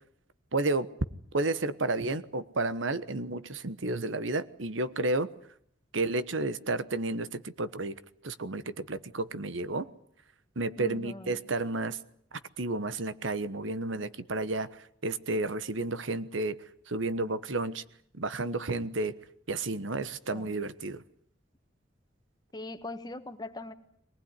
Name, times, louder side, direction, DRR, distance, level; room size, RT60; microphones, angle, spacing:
voice 1, 0.5-0.9 1.3-5.3 5.9-8.0 8.2-9.9 10.6-12.0 12.6-16.6 16.9-17.8 18.2-19.1 19.5-21.0, right 2 dB, 85° right, 14 dB, 1.2 m, -31 dB
voice 2, 10.8-11.4 20.3-20.5 22.5-23.7, left 2 dB, 20° left, 9 dB, 1.5 m, -41 dB
23.5 x 19.0 x 9.8 m, 0.67 s
head